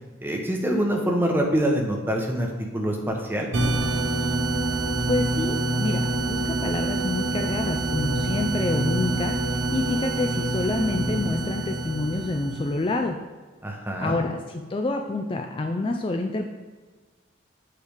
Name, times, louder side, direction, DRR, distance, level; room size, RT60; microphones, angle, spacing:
voice 1, 0.2-3.5 13.6-14.2, right 1 dB, 10° right, 1 dB, 0.8 m, -25 dB
sound 1, 3.5-12.9, right 2 dB, 70° right, 0.7 m, -26 dB
voice 2, 5.1-13.2 14.0-16.5, left 2 dB, 25° left, 4 dB, 0.3 m, -28 dB
7.9 x 3.3 x 5.0 m, 1.3 s
head